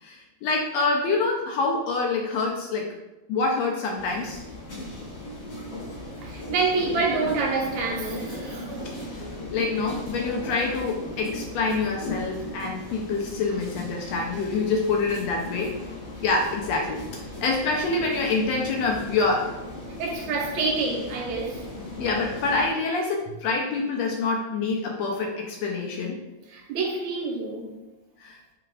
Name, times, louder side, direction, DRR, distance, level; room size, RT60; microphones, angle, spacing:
voice 1, 0.0-2.9 3.3-4.4 9.5-15.7 16.2-19.5 22.0-26.2 28.2-28.4, left 3 dB, 75° left, 1.7 m, -26 dB
sound 1, 4.0-22.7, left 1 dB, 40° left, 2.6 m, -37 dB
voice 2, 6.2-8.6 20.0-21.6 26.5-27.7, right 4 dB, 75° right, 2.0 m, -27 dB
8.0 x 4.9 x 2.4 m
omnidirectional pair, 3.5 m